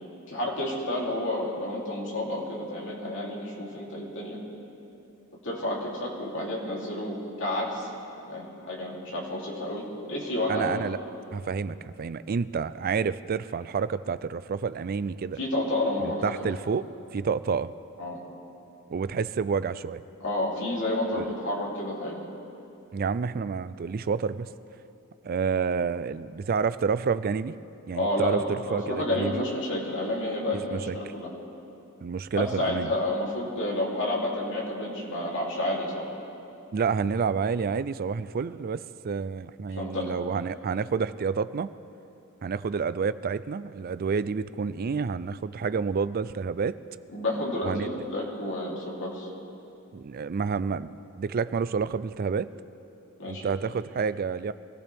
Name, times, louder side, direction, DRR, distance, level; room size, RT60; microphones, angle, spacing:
voice 1, 0.3-4.4 5.4-7.9 8.3-10.8 15.4-16.3 18.0-18.2 20.2-22.2 27.9-31.3 32.3-36.0 39.8-40.1 47.1-49.3 53.2-53.5, left 1 dB, 55° left, -4 dB, 3.2 m, -30 dB
voice 2, 10.5-11.0 11.3-15.4 16.0-16.9 17.1-17.7 18.9-20.0 21.1-21.3 22.9-24.5 25.2-27.5 27.9-29.4 30.7-31.0 32.0-32.9 36.7-41.7 42.4-46.8 47.6-47.9 49.9-52.5 53.3-54.5, right 5 dB, 40° right, 15 dB, 0.4 m, -29 dB
24.0 x 15.5 x 3.5 m, 2.8 s
head